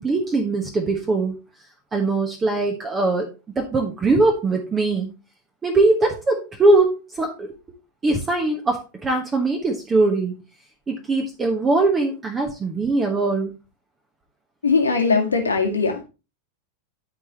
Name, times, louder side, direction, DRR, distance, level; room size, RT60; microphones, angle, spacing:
voice 1, 0.0-1.4 1.9-5.1 5.6-7.5 8.0-10.4 10.9-13.5, right 2 dB, 20° right, 1.3 m, -21 dB
voice 2, 14.6-16.0, left 4 dB, 75° left, 1.9 m, -20 dB
12.5 x 4.9 x 2.9 m
figure-of-eight pair, 90°, 0 cm